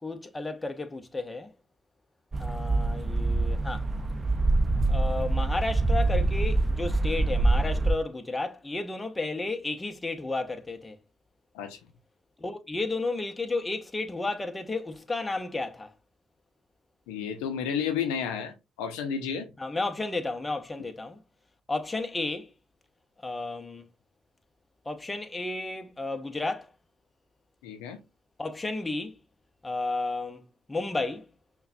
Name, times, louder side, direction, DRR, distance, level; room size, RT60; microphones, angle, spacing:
voice 1, 0.0-1.5 2.4-3.9 4.9-11.0 12.4-15.9 19.6-21.2 21.7-22.5 23.2-23.8 24.9-26.7 28.4-29.2 29.6-31.3, left 2 dB, 20° left, 0.7 m, -32 dB
sound 1, 2.3-7.9, right 2 dB, 30° right, 0.5 m, -25 dB
voice 2, 17.1-19.5 27.6-28.0, left 7 dB, 85° left, 0.5 m, -32 dB
5.5 x 2.3 x 2.6 m
hypercardioid pair, 50°, 0 cm